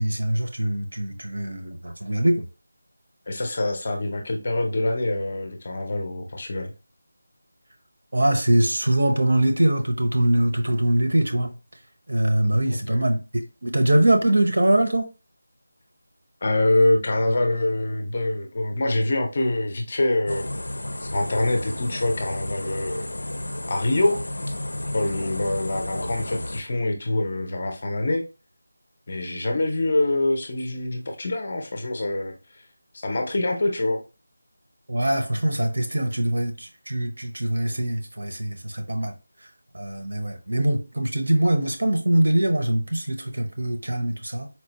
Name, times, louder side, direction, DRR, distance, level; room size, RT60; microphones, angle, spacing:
voice 1, 0.0-2.5 8.1-11.5 12.1-13.2 13.6-15.1 34.9-39.1 39.4-39.5 39.7-44.5, right 1 dB, 60° right, 0.8 m, -23 dB
voice 2, 3.3-6.7 12.7-13.0 16.4-20.5 21.0-23.1 23.7-24.2 24.9-28.2 29.1-32.3 32.9-34.0, left 2 dB, 25° left, 0.4 m, -25 dB
sound 1, 20.3-26.6, left 1 dB, 90° left, 0.4 m, -32 dB
4.3 x 2.0 x 2.8 m
figure-of-eight pair, 180°, 0 cm